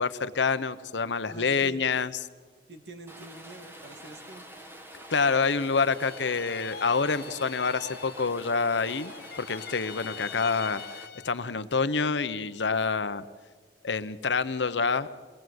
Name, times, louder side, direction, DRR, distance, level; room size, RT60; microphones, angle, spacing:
voice 1, 0.0-2.2 5.1-10.8 11.2-13.2 13.8-15.1, left 4 dB, 85° left, 13 dB, 0.9 m, -27 dB
voice 2, 1.3-1.8 2.7-4.5, right 2 dB, 70° right, 6 dB, 2.4 m, -46 dB
Rain, 3.1-11.1, equal, 15° right, 1.8 m, -47 dB
sound 1, 5.9-8.5 8.8-11.5, left 7 dB, 60° left, 0.8 m, -43 dB
27.5 x 19.5 x 7.9 m, 1.5 s
head